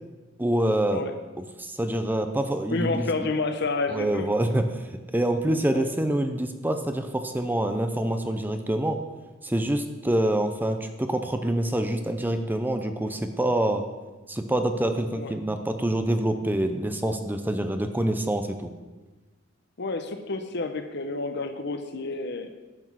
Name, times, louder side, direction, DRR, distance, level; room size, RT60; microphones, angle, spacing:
voice 1, 0.4-1.0 1.6-3.3 3.9-9.0 9.4-13.8 14.3-18.7, right 1 dB, 10° right, 7 dB, 0.6 m, -26 dB
voice 2, 2.7-4.3 5.7-5.8 15.1-15.3 19.8-22.5, left 3 dB, 60° left, 8 dB, 0.9 m, -29 dB
11.0 x 6.2 x 6.2 m, 1.2 s
head